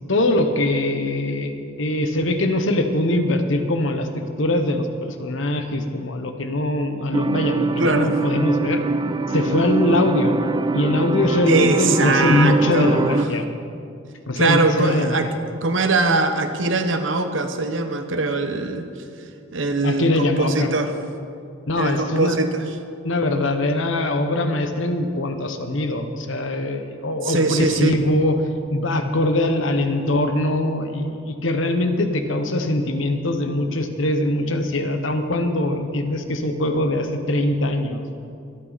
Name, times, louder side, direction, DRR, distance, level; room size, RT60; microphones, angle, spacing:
voice 1, 0.1-8.8 9.3-10.4 10.7-13.5 14.3-15.2 19.8-20.7 21.7-22.4 23.0-28.4 28.7-38.0, left 1 dB, 70° left, 6 dB, 1.1 m, -22 dB
sound 1, 7.1-13.3, right 3 dB, 20° right, 0.3 m, -23 dB
voice 2, 7.8-8.1 11.5-13.1 14.4-15.3 15.6-18.9 19.5-20.9 21.8-22.6 27.2-28.0, right 3 dB, 65° right, 7 dB, 1.1 m, -22 dB
23.5 x 9.1 x 4.1 m, 2.5 s
head